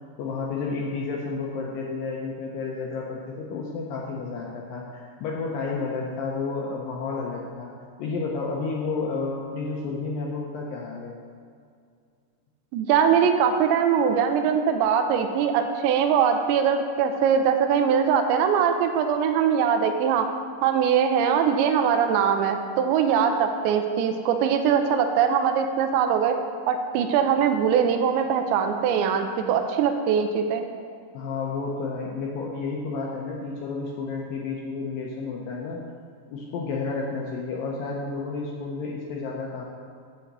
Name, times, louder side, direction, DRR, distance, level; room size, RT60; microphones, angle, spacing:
voice 1, 0.2-7.7 8.0-11.2 31.1-35.8 36.3-39.6, left 4 dB, 85° left, -2 dB, 2.0 m, -31 dB
voice 2, 12.7-20.3 20.6-26.4 26.7-30.7, right 7 dB, 85° right, 6 dB, 2.9 m, -22 dB
10.5 x 3.9 x 7.4 m, 2.3 s
omnidirectional pair, 5.1 m